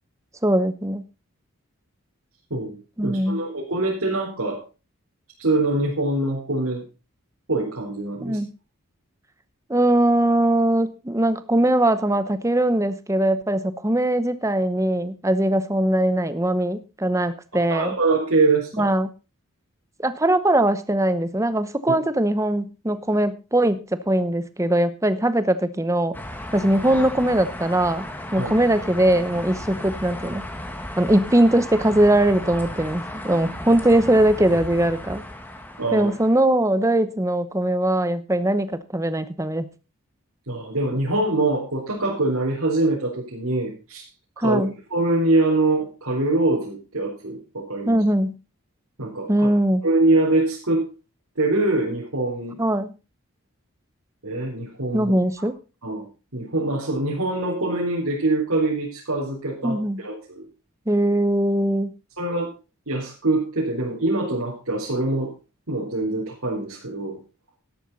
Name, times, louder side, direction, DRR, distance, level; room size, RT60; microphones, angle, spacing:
voice 1, 0.4-1.0 3.0-3.4 8.2-8.5 9.7-17.9 18.8-19.1 20.0-26.2 26.5-28.1 28.3-30.5 31.0-35.2 35.9-39.7 44.4-44.7 47.9-48.4 49.3-49.8 52.6-52.9 54.9-55.5 59.6-60.0 60.9-61.9, right 1 dB, 15° right, 12 dB, 0.8 m, -21 dB
voice 2, 3.0-4.6 5.4-6.8 7.5-8.4 17.5-18.9 28.4-28.5 35.8-36.1 40.5-44.0 44.4-44.6 44.9-48.0 49.0-49.5 49.8-50.9 51.4-52.6 54.2-55.1 55.8-56.0 56.3-60.4 62.2-62.5 62.9-65.3 65.7-67.2, right 2 dB, 80° right, -5 dB, 4.0 m, -24 dB
sound 1, 26.1-36.4, left 1 dB, 10° left, 1.7 m, -35 dB
12.5 x 11.0 x 4.1 m, 0.32 s
head